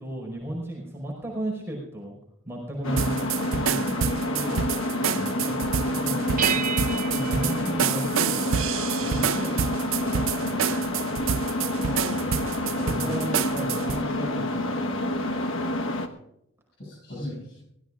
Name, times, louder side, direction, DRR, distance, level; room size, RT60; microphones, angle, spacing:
voice 1, 0.0-2.1 2.4-3.2 3.5-4.0 4.3-4.6 5.3-6.6 7.1-8.4 9.0-11.2 11.5-12.1 12.8-15.7, right 1 dB, 10° right, -1 dB, 5.1 m, -35 dB
sound 1, 2.8-16.1, left 1 dB, 85° left, 1.3 m, -28 dB
sound 2, 3.0-14.0, right 8 dB, 85° right, 0.5 m, -28 dB
voice 2, 5.0-5.4 7.6-7.7 11.9-12.6 16.8-17.6, left 1 dB, 55° left, -7 dB, 6.8 m, -37 dB
sound 3, 6.4-8.6, right 8 dB, 40° right, 0.7 m, -32 dB
24.5 x 17.5 x 2.5 m, 0.78 s
head